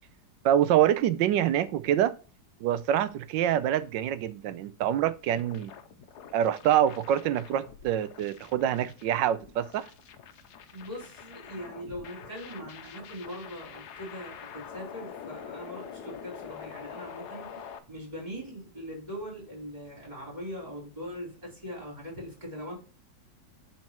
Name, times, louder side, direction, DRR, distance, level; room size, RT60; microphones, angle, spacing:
voice 1, 0.4-2.2 2.6-5.7 6.3-9.9, right 11 dB, 90° right, 1.3 m, -25 dB
sound 1, 5.3-17.8, left 8 dB, 70° left, 1.2 m, -46 dB
voice 2, 10.7-22.7, equal, 25° right, 4.1 m, -41 dB
10.5 x 4.3 x 3.0 m
omnidirectional pair, 1.9 m